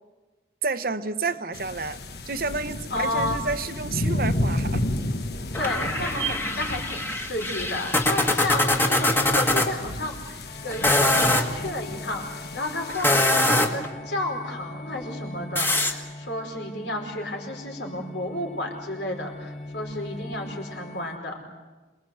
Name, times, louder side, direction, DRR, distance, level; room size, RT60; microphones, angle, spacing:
voice 1, 0.6-2.0 2.3-4.8, right 4 dB, 55° right, 10 dB, 1.0 m, -30 dB
sound 1, 1.5-13.5, left 1 dB, 60° left, 1.4 m, -32 dB
voice 2, 2.9-3.4 5.6-21.4, left 1 dB, 80° left, 2 dB, 5.0 m, -32 dB
sound 2, 5.5-9.7 10.7-11.5 12.9-13.9 15.5-15.9, left 1 dB, 10° left, 1.7 m, -23 dB
sound 3, 10.4-21.2, left 2 dB, 40° left, 1.7 m, -41 dB
27.5 x 20.5 x 8.0 m, 1.2 s
head